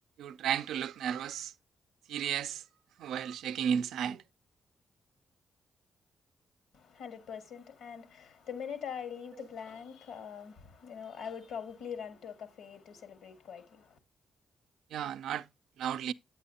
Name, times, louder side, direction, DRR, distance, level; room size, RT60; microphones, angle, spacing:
voice 1, 0.2-1.5 2.1-2.6 3.0-4.2 14.9-15.4 15.8-16.1, right 8 dB, 85° right, 0.4 m, -33 dB
voice 2, 6.7-14.0, left 7 dB, 85° left, 2.0 m, -43 dB
8.9 x 8.3 x 2.8 m
cardioid pair, 65°, 0 cm